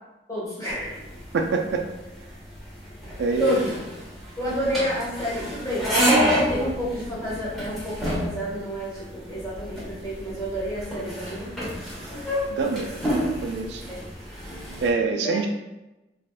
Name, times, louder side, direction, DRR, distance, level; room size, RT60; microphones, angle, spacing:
voice 1, 0.3-1.1 3.0-3.7 4.4-5.9 6.4-11.5 13.9-14.0 15.2-15.4, equal, 20° left, -7 dB, 1.3 m, -30 dB
sound 1, 0.7-14.9, equal, ahead, 1.1 m, -29 dB
voice 2, 1.3-1.8 3.2-3.8 12.5-12.9 13.2-13.8 14.8-15.5, right 4 dB, 75° right, 4 dB, 0.3 m, -25 dB
3.3 x 2.6 x 2.3 m, 1.0 s
head